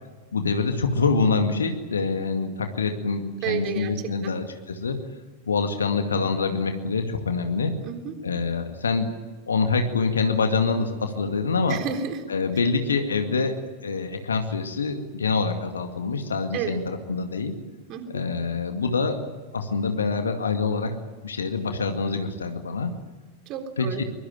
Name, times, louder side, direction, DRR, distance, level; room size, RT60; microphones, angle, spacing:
voice 1, 0.3-5.0 5.5-7.7 8.2-9.1 9.5-11.8 12.3-13.6 13.8-17.5 18.1-19.2 19.5-20.9 21.2-22.9 23.8-24.0, left 4 dB, 70° left, 6 dB, 2.1 m, -25 dB
voice 2, 3.4-3.9 4.2-4.3 7.8-8.1 11.7-12.2 16.5-16.8 17.9-18.1 23.5-24.0, right 7 dB, 40° right, 6 dB, 3.8 m, -30 dB
23.5 x 22.5 x 9.0 m, 1.4 s
figure-of-eight pair, 90°, 0 cm